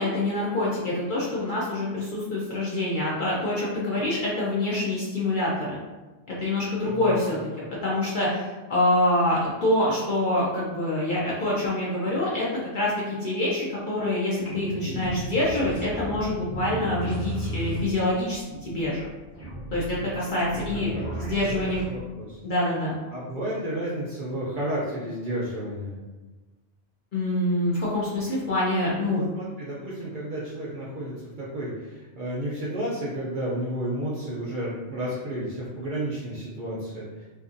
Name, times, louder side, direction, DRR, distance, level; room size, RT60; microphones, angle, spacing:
voice 1, 0.0-5.8 6.3-7.4 7.8-12.5 12.7-19.1 19.7-20.9 21.2-21.8 22.4-23.0 27.1-29.2, left 1 dB, 55° left, -6 dB, 0.6 m, -26 dB
sound 1, 14.4-21.9, right 1 dB, 15° left, 0.8 m, -34 dB
voice 2, 21.5-22.4 23.1-26.0 29.0-37.2, right 1 dB, 60° right, -7 dB, 0.5 m, -32 dB
2.6 x 2.5 x 2.5 m, 1.2 s
omnidirectional pair, 1.3 m